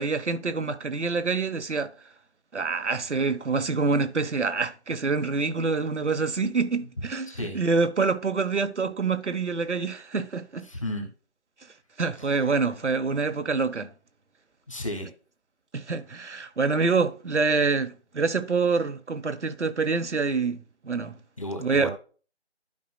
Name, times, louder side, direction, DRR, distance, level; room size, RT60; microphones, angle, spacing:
voice 1, 0.0-1.9 2.5-10.6 12.0-13.9 15.7-21.1 21.6-21.9, right 4 dB, 85° right, 1.1 m, -26 dB
voice 2, 7.2-7.6 10.6-11.1 12.2-12.5 14.7-15.1 21.4-21.9, left 1 dB, 30° left, 1.6 m, -34 dB
12.5 x 5.3 x 2.2 m
figure-of-eight pair, 175°, 34 cm